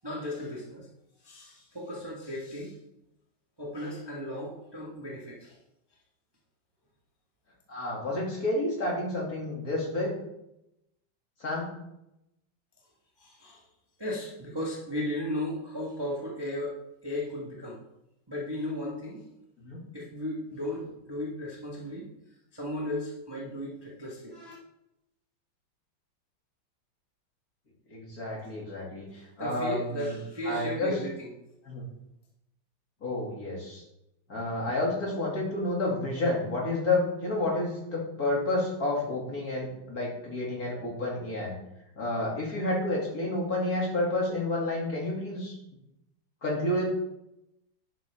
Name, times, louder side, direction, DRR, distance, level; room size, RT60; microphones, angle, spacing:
voice 1, 0.0-0.9 1.2-2.8 3.6-5.6 13.2-13.6 14.0-17.8 18.3-19.2 19.9-22.1 22.5-24.6 29.4-31.3, left 1 dB, 15° right, -4 dB, 1.4 m, -35 dB
voice 2, 7.7-10.2 11.4-11.7 19.6-19.8 27.9-30.2 30.4-30.9 31.7-31.8 33.0-33.8 34.3-41.6 42.0-45.6 46.4-46.9, left 2 dB, 45° left, -3 dB, 3.1 m, -30 dB
11.5 x 7.0 x 3.6 m, 0.86 s
omnidirectional pair, 2.3 m